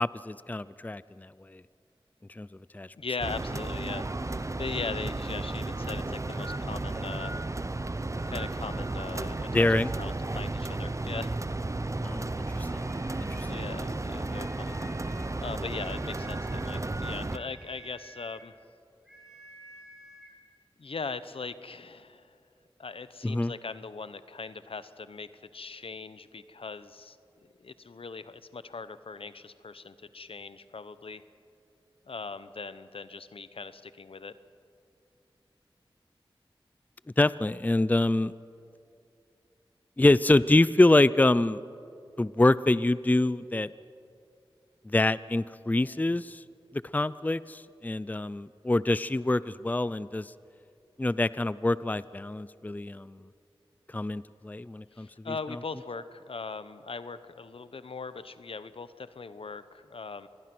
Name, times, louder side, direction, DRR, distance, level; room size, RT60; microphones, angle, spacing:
voice 1, 0.0-1.6 2.4-2.5 2.7-2.9 9.5-9.9 12.0-12.9 13.3-13.6 23.2-23.5 37.2-38.3 40.0-41.6 42.2-43.7 44.9-46.4 46.9-50.3 51.0-53.2 53.9-55.3, left 2 dB, 15° left, 17 dB, 0.4 m, -25 dB
voice 2, 3.0-7.4 8.3-9.7 10.0-11.4 13.4-14.8 15.4-18.5 20.8-22.3 22.8-27.2 27.6-31.2 32.1-34.3 54.9-60.3, left 4 dB, 80° left, 13 dB, 0.8 m, -40 dB
sound 1, 3.2-17.4, right 2 dB, 35° right, 0.8 m, -33 dB
sound 2, 12.7-13.8 14.2-15.4 15.7-16.7 17.3-18.5 19.0-20.4, right 1 dB, 5° right, 6.8 m, -52 dB
26.5 x 20.5 x 6.1 m, 2.5 s
wide cardioid pair, 55°, 9 cm